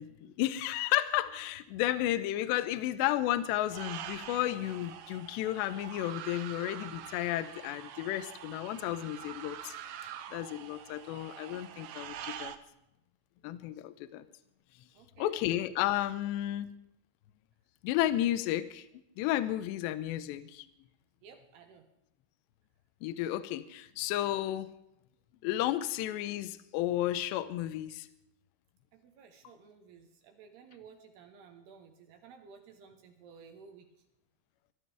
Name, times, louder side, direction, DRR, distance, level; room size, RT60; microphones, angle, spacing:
voice 1, 0.0-9.7 10.3-12.5 13.4-14.2 15.2-16.7 17.8-18.9 19.2-20.7 23.0-24.7 25.4-28.1, left 14 dB, 80° left, 13 dB, 2.7 m, -32 dB
sound 1, 3.7-12.6, right 10 dB, 90° right, 2.1 m, -45 dB
voice 2, 14.9-15.4 21.2-21.9 28.9-33.9, right 6 dB, 70° right, 6 dB, 2.8 m, -55 dB
24.5 x 13.0 x 3.5 m, 0.81 s
omnidirectional pair, 5.6 m